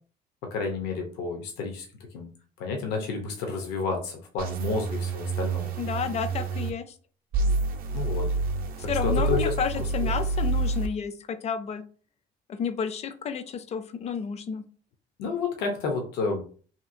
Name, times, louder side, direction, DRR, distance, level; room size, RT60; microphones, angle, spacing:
voice 1, 0.4-1.9 2.1-2.3 2.6-5.7 7.9-8.3 8.8-9.5 10.0-10.1 15.2-16.4, left 4 dB, 85° left, 3 dB, 0.6 m, -30 dB
sound 1, 4.4-6.7 7.3-10.9, right 3 dB, 60° right, 0.5 m, -28 dB
voice 2, 5.8-6.9 8.9-11.8 12.5-14.6, left 7 dB, 40° left, 11 dB, 0.4 m, -31 dB
2.8 x 2.6 x 2.5 m, 0.42 s
cardioid pair, 110°, 17 cm